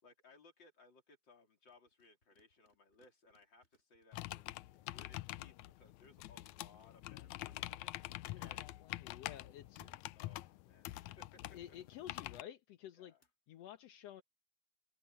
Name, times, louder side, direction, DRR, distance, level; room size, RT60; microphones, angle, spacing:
voice 1, 0.0-8.7 9.8-11.4 13.0-13.2, left 3 dB, 35° left, 4.2 m, -65 dB
sound 1, 1.6-5.2 5.7-7.7 9.8-11.2 13.2-13.3, left 1 dB, 20° left, 6.0 m, -72 dB
sound 2, 4.1-12.4, left 17 dB, 80° left, 1.7 m, -46 dB
voice 2, 8.3-9.8 11.0-11.1 11.5-13.1 13.5-14.2, left 11 dB, 65° left, 1.8 m, -52 dB
open air
omnidirectional pair, 3.9 m